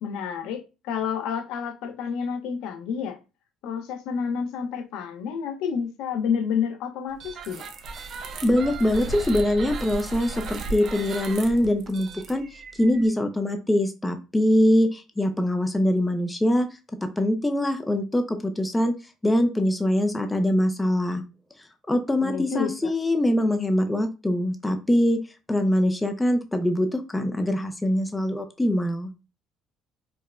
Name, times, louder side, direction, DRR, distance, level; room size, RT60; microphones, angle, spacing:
voice 1, 0.0-3.2 3.6-7.7 22.2-22.9, left 7 dB, 80° left, 0.7 m, -29 dB
sound 1, 7.2-13.1, right 3 dB, 45° right, 0.6 m, -36 dB
voice 2, 8.4-12.4 12.8-16.7 17.0-18.9 19.2-21.2 21.9-25.2 25.5-29.1, left 1 dB, 10° left, 0.4 m, -23 dB
4.6 x 2.1 x 2.4 m
cardioid pair, 130°, 0 cm